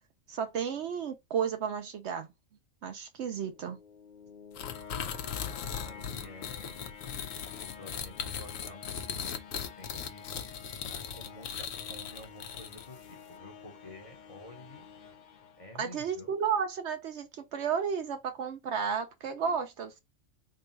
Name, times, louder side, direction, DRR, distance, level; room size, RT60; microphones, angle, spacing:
voice 1, 0.3-2.3 2.8-3.8 15.8-20.0, right 7 dB, 65° right, 0.8 m, -33 dB
sound 1, 3.2-16.2, left 7 dB, 60° left, 0.5 m, -50 dB
sound 2, 4.6-13.1, left 7 dB, 80° left, 1.0 m, -38 dB
voice 2, 4.9-6.8 7.0-10.5 10.9-14.9 15.6-16.3, left 1 dB, 30° left, 0.8 m, -51 dB
3.8 x 2.3 x 3.9 m
omnidirectional pair, 1.3 m